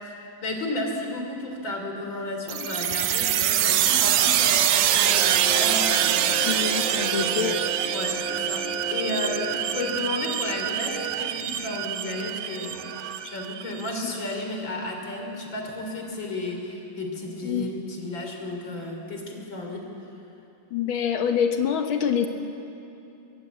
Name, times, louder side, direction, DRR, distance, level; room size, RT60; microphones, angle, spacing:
voice 1, 0.0-6.5 7.0-7.6 7.9-12.8 13.2-19.9, left 2 dB, 35° left, 2 dB, 3.7 m, -33 dB
sound 1, 2.5-13.9, right 11 dB, 85° right, 2.6 m, -25 dB
Brass instrument, 5.1-10.0, right 1 dB, 35° right, 1.5 m, -35 dB
voice 2, 6.4-7.6 14.0-14.1 17.4-17.8 20.7-22.3, left 8 dB, 70° left, 5 dB, 1.2 m, -26 dB
22.5 x 22.0 x 8.5 m, 2.8 s
omnidirectional pair, 3.9 m